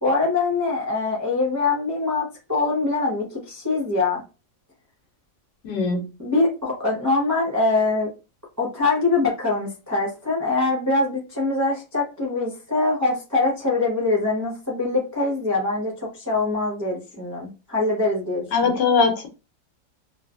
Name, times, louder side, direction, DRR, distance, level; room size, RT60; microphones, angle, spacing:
voice 1, 0.0-4.2 6.2-8.1 8.6-18.7, left 3 dB, 25° right, -4 dB, 0.4 m, -23 dB
voice 2, 5.6-6.0 18.5-19.3, left 4 dB, 80° left, 4 dB, 1.4 m, -20 dB
3.1 x 2.3 x 2.4 m, 0.30 s
omnidirectional pair, 1.8 m